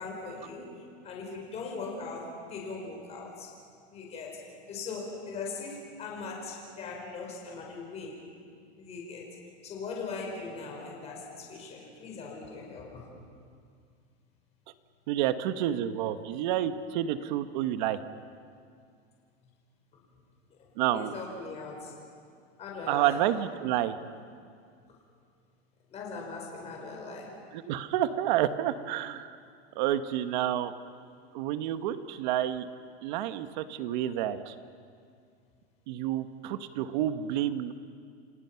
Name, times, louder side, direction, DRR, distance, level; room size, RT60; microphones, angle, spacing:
voice 1, 0.0-3.5 3.9-8.2 8.8-9.4 9.6-13.0 19.9-20.0 20.5-21.9 22.6-23.2 25.9-27.4, left 4 dB, 20° left, -1 dB, 5.1 m, -40 dB
voice 2, 15.1-18.0 20.8-21.1 22.9-24.0 27.5-29.4 29.7-30.7 31.3-32.7 33.0-34.5 35.9-37.7, right 12 dB, 50° right, 10 dB, 1.3 m, -29 dB
30.0 x 26.5 x 5.8 m, 2.2 s
supercardioid pair, 170°, 30 cm